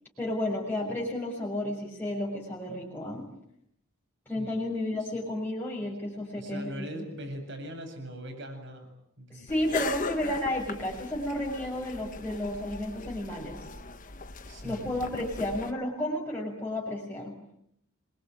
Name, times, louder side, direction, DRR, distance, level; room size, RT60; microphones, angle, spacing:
voice 1, 0.2-3.3 4.3-6.9 9.3-13.6 14.6-17.3, left 1 dB, 10° left, -3 dB, 6.5 m, -32 dB
voice 2, 6.3-8.9 9.2-9.5 14.5-14.9, equal, 55° right, 5 dB, 8.0 m, -41 dB
sound 1, 9.5-15.7, left 4 dB, 35° left, 1.3 m, -39 dB
27.5 x 22.5 x 9.3 m, 0.73 s
head